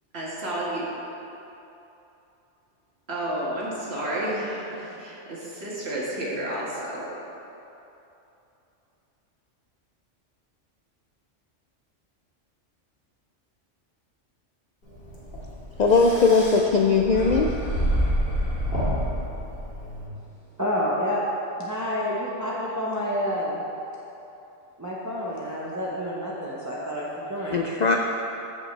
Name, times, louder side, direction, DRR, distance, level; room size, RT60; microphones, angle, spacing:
voice 1, 0.1-0.8 3.1-7.1, right 1 dB, 60° right, -6 dB, 2.0 m, -31 dB
sound 1, 14.9-20.1, equal, 50° left, 2.0 m, -28 dB
voice 2, 15.8-17.5 27.5-28.0, left 4 dB, 65° left, 2 dB, 0.4 m, -19 dB
voice 3, 20.6-21.2 21.6-23.6 24.8-27.7, equal, 15° right, -6 dB, 0.8 m, -29 dB
14.5 x 5.4 x 3.3 m, 2.9 s
omnidirectional pair, 1.2 m